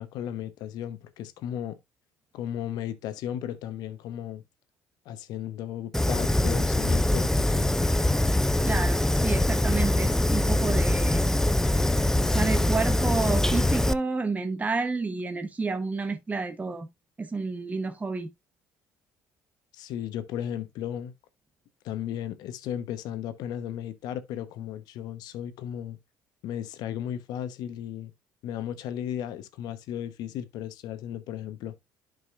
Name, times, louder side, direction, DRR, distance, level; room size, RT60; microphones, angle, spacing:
voice 1, 0.0-1.8 2.3-4.4 5.0-7.7 19.7-21.1 21.8-26.0 26.4-28.1 28.4-31.8, left 10 dB, 70° left, 1.1 m, -35 dB
Fire, 5.9-13.9, left 1 dB, 5° left, 0.5 m, -23 dB
voice 2, 8.6-11.3 12.1-16.9 17.2-18.3, right 3 dB, 20° right, 1.1 m, -30 dB
11.0 x 5.2 x 2.5 m
supercardioid pair, 75°, 7 cm